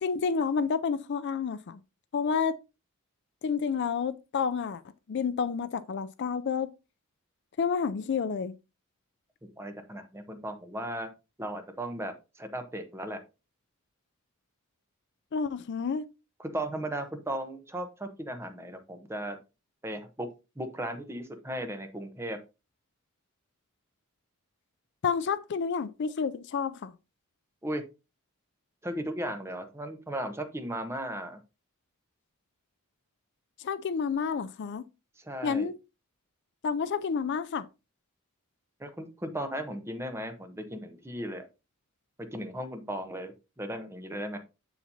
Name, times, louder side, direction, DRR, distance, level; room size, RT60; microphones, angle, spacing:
voice 1, 0.0-1.8 2.1-2.6 3.4-4.8 5.1-6.7 7.6-8.5 15.3-16.1 25.0-26.9 33.6-34.9 35.4-35.7 36.6-37.6, left 6 dB, 55° left, 0.4 m, -29 dB
voice 2, 9.6-11.1 11.4-13.2 16.4-19.4 19.8-20.3 20.6-22.4 27.6-27.8 28.8-31.4 35.2-35.7 38.8-41.5 42.3-44.4, right 1 dB, 10° right, 0.9 m, -36 dB
7.1 x 7.1 x 2.7 m
head